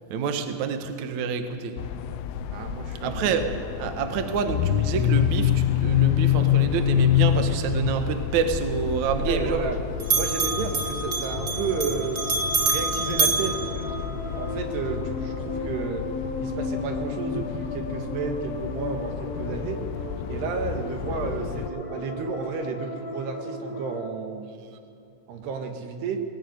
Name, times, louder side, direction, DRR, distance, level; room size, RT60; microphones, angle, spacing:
voice 1, 0.1-1.8 3.0-9.6, right 6 dB, 75° right, 6 dB, 1.6 m, -27 dB
sound 1, 1.8-21.7, left 11 dB, 85° left, 3.5 m, -28 dB
voice 2, 2.5-3.2 9.2-9.8 10.1-12.2 12.6-16.1 16.4-19.8 20.3-24.5 25.3-26.2, right 5 dB, 60° right, 4 dB, 3.5 m, -32 dB
Bell, 8.4-9.7 10.0-14.5, right 3 dB, 35° right, 1.7 m, -27 dB
sound 2, 9.4-24.0, left 3 dB, 35° left, 4.8 m, -36 dB
21.0 x 19.5 x 9.5 m, 2.6 s
omnidirectional pair, 5.9 m